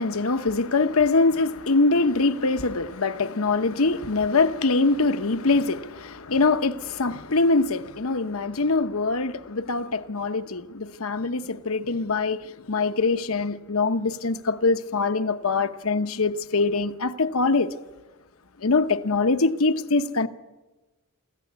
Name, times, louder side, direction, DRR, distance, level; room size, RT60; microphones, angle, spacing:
voice 1, 0.0-17.7 18.6-20.3, left 3 dB, 75° left, 1.0 m, -23 dB
23.5 x 15.0 x 9.5 m
head